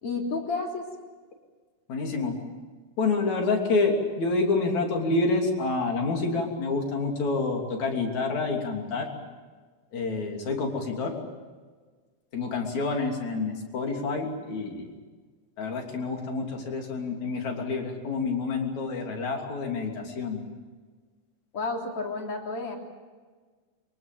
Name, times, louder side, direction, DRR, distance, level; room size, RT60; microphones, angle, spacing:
voice 1, 0.0-0.8 21.5-22.8, left 3 dB, 45° left, 1 dB, 4.2 m, -31 dB
voice 2, 1.9-2.4 3.0-9.1 9.9-11.2 12.3-14.9 15.6-20.5, left 3 dB, 60° left, 2 dB, 4.4 m, -28 dB
23.5 x 23.0 x 7.7 m, 1.4 s
omnidirectional pair, 3.7 m